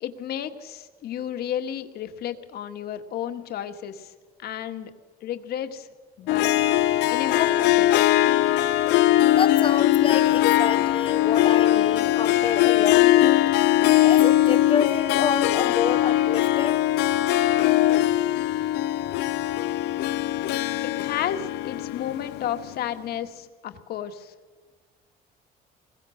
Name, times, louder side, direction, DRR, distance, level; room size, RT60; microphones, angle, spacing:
voice 1, 0.0-4.1 4.4-4.9 5.2-5.9 6.2-6.5 7.1-7.9 20.8-24.3, left 10 dB, 70° left, 1.8 m, -32 dB
Harp, 6.3-22.8, left 14 dB, 90° left, 0.9 m, -21 dB
voice 2, 9.3-13.4 14.0-16.8, left 6 dB, 30° left, 0.7 m, -29 dB
25.0 x 21.5 x 6.6 m
cardioid pair, 110°, 17 cm